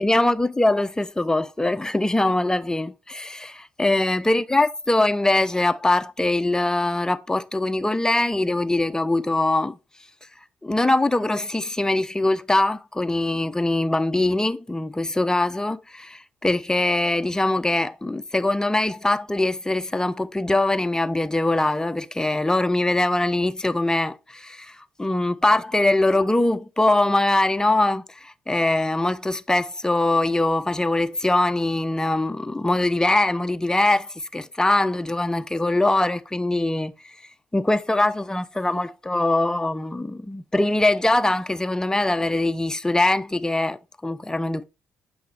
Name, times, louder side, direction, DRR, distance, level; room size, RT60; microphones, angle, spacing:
voice 1, 0.0-9.8 10.6-37.1 37.5-44.6, left 2 dB, 10° left, 0.8 m, -22 dB
8.6 x 5.9 x 3.4 m
hypercardioid pair, 55°, 6 cm